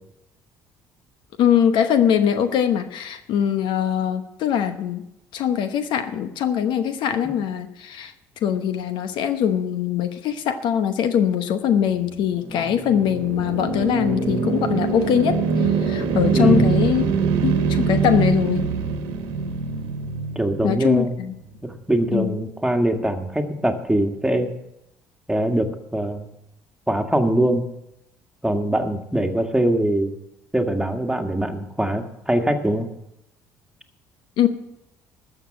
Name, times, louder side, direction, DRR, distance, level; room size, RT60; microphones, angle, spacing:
voice 1, 1.4-5.0 5.3-8.1 8.4-17.0 17.4-18.7 20.6-21.3 22.1-22.4 34.4-34.5, left 9 dB, 65° left, 9 dB, 0.9 m, -22 dB
sound 1, 12.1-21.4, right 5 dB, 75° right, 1.4 m, -23 dB
voice 2, 16.3-16.8 20.3-21.1 21.6-24.5 25.3-26.3 26.9-27.6 28.4-30.1 30.5-32.9, right 1 dB, 5° right, 4 dB, 1.7 m, -22 dB
13.0 x 6.8 x 7.6 m, 0.85 s
hypercardioid pair, 65°, 9 cm